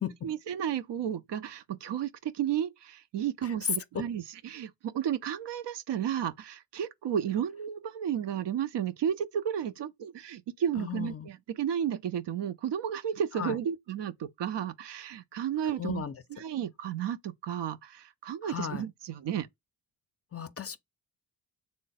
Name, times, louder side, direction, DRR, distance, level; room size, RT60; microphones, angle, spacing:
voice 1, 0.2-16.0 16.3-19.5, right 9 dB, 70° right, 0.5 m, -33 dB
voice 2, 10.8-11.3 13.4-13.6 15.8-16.1 18.4-18.8 20.3-20.8, left 8 dB, 35° left, 0.4 m, -35 dB
3.4 x 2.0 x 3.8 m
cardioid pair, 65°, 44 cm